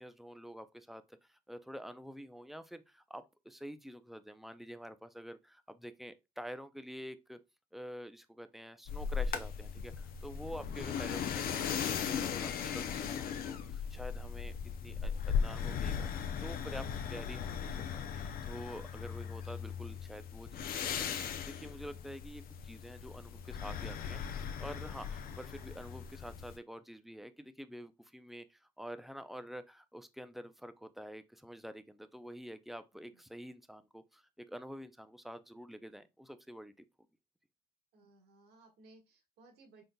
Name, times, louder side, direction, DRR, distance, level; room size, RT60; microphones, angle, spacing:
voice 1, 0.0-7.4 7.7-14.5 14.8-16.1 16.4-21.1 21.3-36.7, equal, ahead, 0.3 m, -48 dB
sound 1, 8.9-26.6, left 7 dB, 60° left, 0.5 m, -38 dB
voice 2, 37.9-39.8, right 2 dB, 75° right, 1.5 m, -61 dB
3.8 x 3.8 x 2.2 m
cardioid pair, 110°, 17 cm